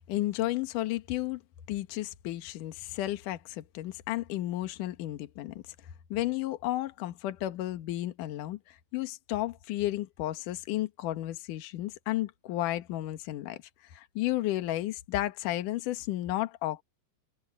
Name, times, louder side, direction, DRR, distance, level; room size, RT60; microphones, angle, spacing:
voice 1, 0.1-1.4 1.7-5.5 6.1-16.8, left 15 dB, 65° left, 2.5 m, -33 dB
omnidirectional pair, 4.8 m